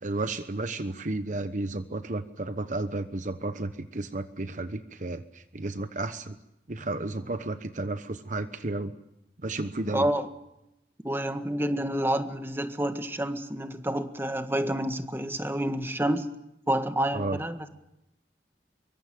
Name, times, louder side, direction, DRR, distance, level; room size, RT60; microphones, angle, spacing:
voice 1, 0.0-6.4 6.7-8.9 9.4-10.1 17.1-17.4, right 2 dB, 45° right, 10 dB, 1.0 m, -32 dB
voice 2, 9.8-10.3 11.0-16.3 16.7-17.6, right 1 dB, 15° right, 7 dB, 1.6 m, -28 dB
25.5 x 23.5 x 7.7 m, 0.86 s
head